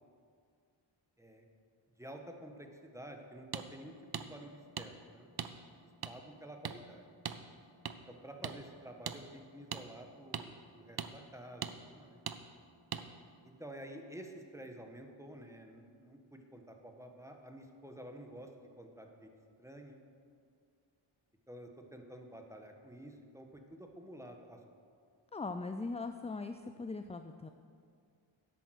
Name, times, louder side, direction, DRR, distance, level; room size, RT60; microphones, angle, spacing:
voice 1, 2.0-5.3 6.0-7.0 8.1-12.2 13.4-18.5 18.8-19.3 19.6-20.0 21.5-24.6, right 1 dB, 5° right, 3 dB, 1.3 m, -50 dB
sound 1, 3.5-3.7 4.1-4.3 4.8-4.9 5.4-5.5 6.0-6.1 6.6-6.8 7.3-7.4 7.9-8.0 8.4-8.6 9.1-9.2 9.7-9.8 10.3-10.5 11.0-11.1 11.6-11.7 12.3-12.4 12.9-13.0, right 7 dB, 50° right, 0.6 m, -39 dB
voice 2, 25.3-27.5, left 3 dB, 15° left, 8 dB, 0.3 m, -40 dB
10.0 x 8.6 x 6.4 m, 2.2 s
wide cardioid pair, 75°, 50 cm